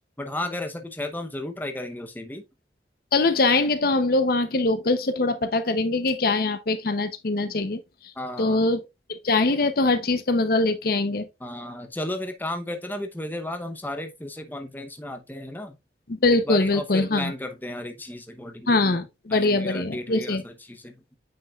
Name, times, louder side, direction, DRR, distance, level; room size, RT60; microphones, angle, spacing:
voice 1, 0.2-2.4 8.2-8.7 11.4-15.8 16.4-19.0 19.3-21.0, left 1 dB, 10° left, 0.8 m, -34 dB
voice 2, 3.1-7.8 8.4-8.9 9.2-11.2 16.1-17.3 18.7-20.4, left 2 dB, 55° left, 0.7 m, -22 dB
8.8 x 5.3 x 2.3 m
head